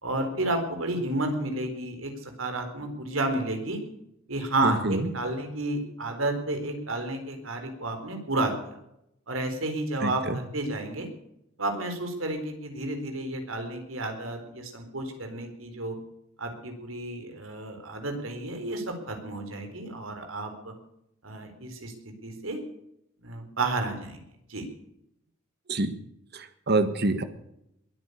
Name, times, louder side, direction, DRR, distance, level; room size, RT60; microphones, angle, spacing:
voice 1, 0.0-3.8 4.3-8.7 9.3-11.1 11.6-16.0 16.4-20.7 21.2-21.9 22.2-22.6 23.2-24.2 24.5-24.7, right 2 dB, 85° right, 5 dB, 4.2 m, -31 dB
voice 2, 4.6-5.1 10.0-10.4 25.7-25.9 26.3-27.2, right 2 dB, 55° right, 10 dB, 1.6 m, -26 dB
21.5 x 9.3 x 6.7 m, 0.78 s
head